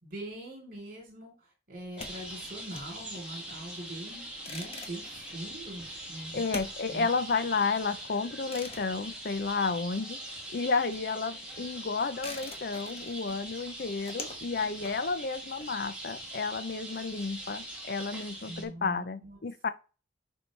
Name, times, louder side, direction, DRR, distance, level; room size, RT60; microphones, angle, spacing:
voice 1, 0.0-6.4 6.9-7.2 18.5-19.4, right 1 dB, 45° right, 3.6 m, -43 dB
sound 1, 1.8-10.1 10.4-16.2, left 3 dB, 30° left, 1.1 m, -47 dB
sound 2, 2.0-18.6, right 1 dB, 5° right, 2.2 m, -42 dB
voice 2, 6.3-10.2 10.5-19.7, left 4 dB, 50° left, 0.5 m, -32 dB
10.0 x 4.7 x 3.3 m
head